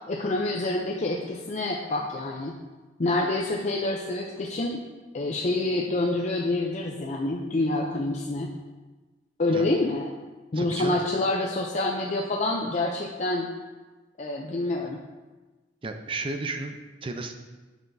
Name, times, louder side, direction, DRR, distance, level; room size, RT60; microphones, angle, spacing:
voice 1, 0.1-2.5 3.0-4.8 5.1-8.5 9.4-10.1 10.5-13.5 14.2-15.0, left 2 dB, 40° left, 0 dB, 0.5 m, -27 dB
voice 2, 10.5-11.0 15.8-17.3, right 3 dB, 30° right, 6 dB, 0.5 m, -33 dB
9.0 x 5.8 x 2.6 m, 1.2 s
head